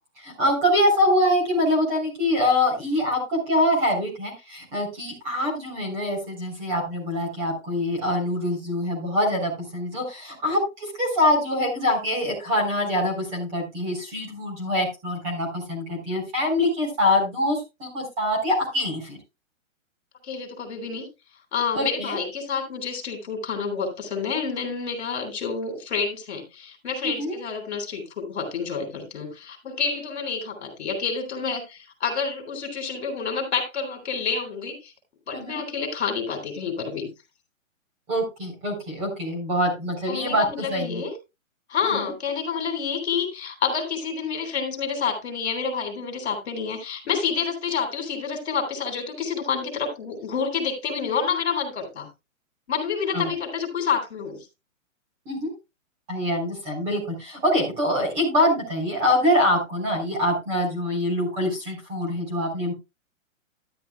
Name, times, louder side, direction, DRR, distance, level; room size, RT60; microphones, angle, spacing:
voice 1, 0.2-19.2 21.7-22.2 27.0-27.3 35.3-35.6 38.1-41.0 41.8-42.1 53.1-53.3 55.3-55.5 56.1-62.7, left 1 dB, 15° right, 0 dB, 3.8 m, -24 dB
voice 2, 20.2-21.1 21.5-34.9 35.3-37.1 40.1-41.1 41.7-52.1 52.7-54.5, left 6 dB, 50° left, 4 dB, 3.7 m, -28 dB
12.5 x 11.0 x 2.3 m, 0.25 s
hypercardioid pair, 175°, 40 cm